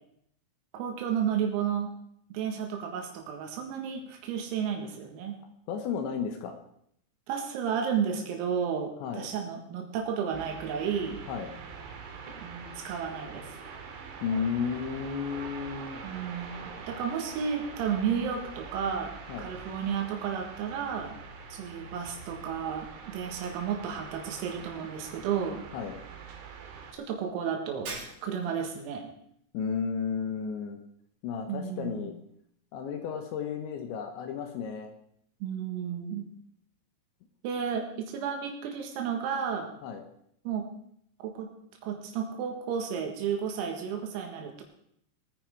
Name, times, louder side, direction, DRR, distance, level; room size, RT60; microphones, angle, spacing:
voice 1, 0.7-1.9 2.3-5.4 7.3-11.2 12.4-13.5 16.0-21.2 21.5-25.6 26.9-27.9 28.2-29.1 31.5-32.1 35.4-36.3 37.4-39.7 40.5-40.7 41.2-41.5 41.8-44.6, right 7 dB, 85° right, 2 dB, 4.5 m, -32 dB
voice 2, 5.7-6.6 9.0-9.3 11.3-11.5 14.2-16.0 19.3-19.5 25.7-26.0 29.5-30.8 31.2-32.1 32.7-34.9 39.8-40.0, left 6 dB, 70° left, 6 dB, 3.0 m, -33 dB
sound 1, 10.3-26.9, right 5 dB, 70° right, 4.1 m, -44 dB
Shatter, 27.9-28.7, right 3 dB, 50° right, 6.3 m, -40 dB
20.0 x 9.9 x 4.7 m, 0.72 s
omnidirectional pair, 6.0 m